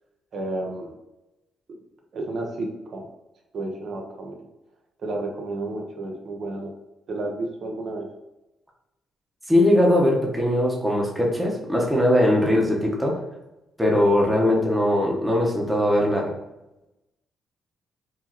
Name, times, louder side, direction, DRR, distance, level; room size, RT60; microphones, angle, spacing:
voice 1, 0.3-1.0 1.7-1.8 2.1-3.1 3.5-4.4 5.0-6.7 7.1-8.1, right 2 dB, 55° right, 2 dB, 0.7 m, -31 dB
voice 2, 9.5-13.2 13.8-16.3, left 1 dB, 5° right, -2 dB, 1.0 m, -20 dB
4.8 x 2.7 x 2.9 m, 0.96 s
cardioid pair, 90°, 0 cm